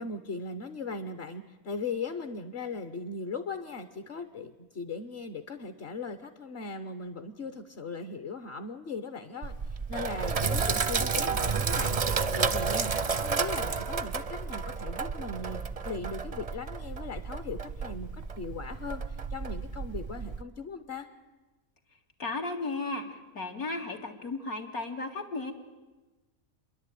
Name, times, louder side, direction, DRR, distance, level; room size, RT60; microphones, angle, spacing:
voice 1, 0.0-9.5 9.9-21.1, left 4 dB, 50° left, 8 dB, 1.1 m, -38 dB
Sink (filling or washing), 9.4-20.4, right 5 dB, 40° right, 0.5 m, -31 dB
voice 2, 22.2-23.1 23.3-25.5, left 3 dB, 80° left, 2 dB, 2.5 m, -34 dB
28.0 x 11.0 x 9.1 m, 1.2 s
omnidirectional pair, 1.5 m